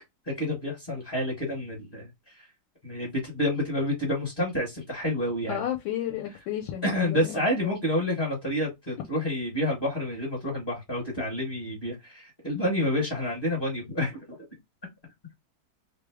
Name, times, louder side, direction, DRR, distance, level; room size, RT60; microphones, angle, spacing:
voice 1, 0.3-2.5 2.8-5.6 6.8-14.4, left 1 dB, 30° left, 1.1 m, -29 dB
voice 2, 5.5-7.4 7.6-7.8, left 10 dB, 75° left, 1.2 m, -32 dB
3.2 x 2.1 x 3.4 m
omnidirectional pair, 2.2 m